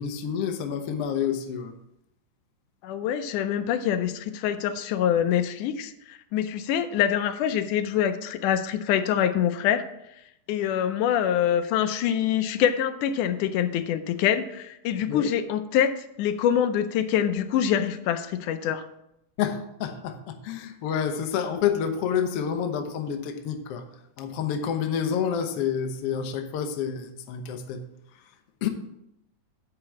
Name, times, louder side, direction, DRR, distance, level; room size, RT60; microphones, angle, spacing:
voice 1, 0.0-1.7 15.0-15.3 19.4-23.8 24.2-27.8 28.6-28.7, left 8 dB, 65° left, 1.5 m, -28 dB
voice 2, 2.8-9.9 10.5-18.9, left 9 dB, 85° left, 2.2 m, -25 dB
9.6 x 4.8 x 7.2 m
omnidirectional pair, 3.6 m